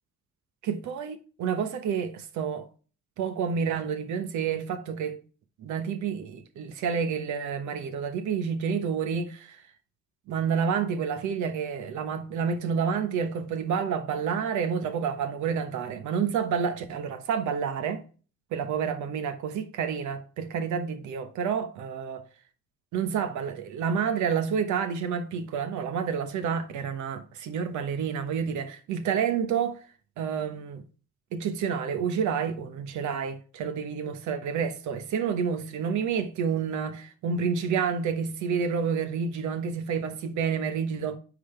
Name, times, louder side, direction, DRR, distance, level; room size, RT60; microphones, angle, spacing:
voice 1, 0.6-2.7 3.2-5.2 5.6-9.6 10.3-18.0 18.5-22.2 22.9-29.8 30.2-30.8 31.3-41.2, right 6 dB, 80° right, 1.2 m, -29 dB
9.5 x 3.9 x 3.3 m
cardioid pair, 95°, 29 cm